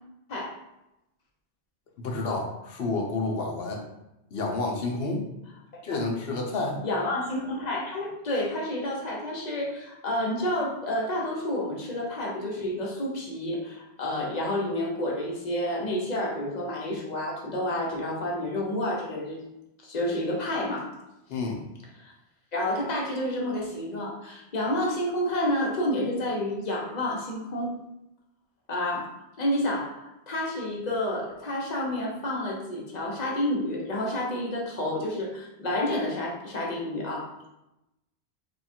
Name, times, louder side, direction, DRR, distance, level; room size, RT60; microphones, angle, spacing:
voice 1, 2.0-3.8 4.3-5.3 5.8-6.8 21.3-21.6, left 3 dB, 65° left, 0 dB, 0.9 m, -29 dB
voice 2, 6.8-19.5 19.8-20.9 22.0-22.1 22.5-27.7 28.7-37.3, left 1 dB, 45° left, -2 dB, 0.9 m, -29 dB
3.5 x 2.3 x 4.2 m, 0.90 s
omnidirectional pair, 1.1 m